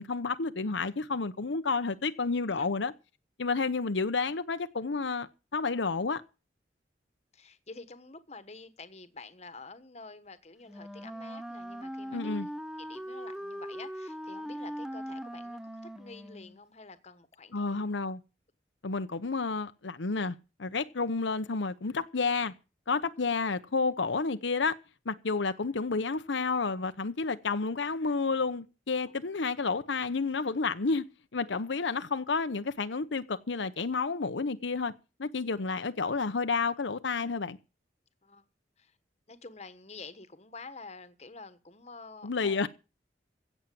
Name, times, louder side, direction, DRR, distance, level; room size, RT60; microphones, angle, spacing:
voice 1, 0.0-2.9 3.4-6.2 12.1-12.5 17.5-18.2 18.8-22.5 22.9-24.8 25.1-31.0 31.3-34.9 35.2-37.6 42.2-42.7, left 4 dB, 90° left, 0.9 m, -30 dB
voice 2, 7.3-12.5 12.8-17.9 38.2-38.4 38.8-39.0 39.3-42.6, left 3 dB, 35° left, 1.3 m, -48 dB
Wind instrument woodwind instrument, 10.7-16.6, equal, 5° right, 0.6 m, -40 dB
16.0 x 7.3 x 7.6 m
head